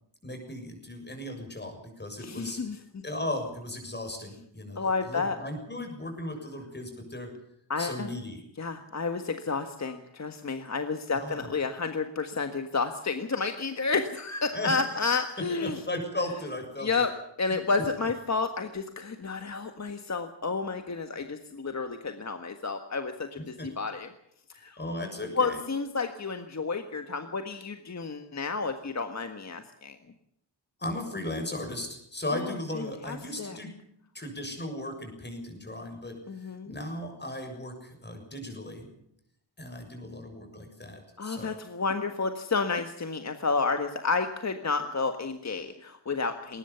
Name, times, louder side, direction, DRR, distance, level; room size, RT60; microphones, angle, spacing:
voice 1, 0.2-2.6 3.0-7.3 7.8-8.4 11.1-11.5 14.5-15.1 15.6-16.9 23.6-23.7 24.5-25.6 30.8-33.7 34.1-38.9 39.6-41.6, left 1 dB, 25° left, 4 dB, 7.1 m, -36 dB
voice 2, 2.2-2.8 4.7-5.4 7.7-8.1 8.6-15.8 16.8-17.1 17.4-24.1 24.6-24.8 25.4-30.0 32.3-33.6 36.3-36.7 41.2-46.6, left 4 dB, 40° left, 7 dB, 1.6 m, -31 dB
21.0 x 19.5 x 7.1 m, 0.74 s
wide cardioid pair, 135°, 43 cm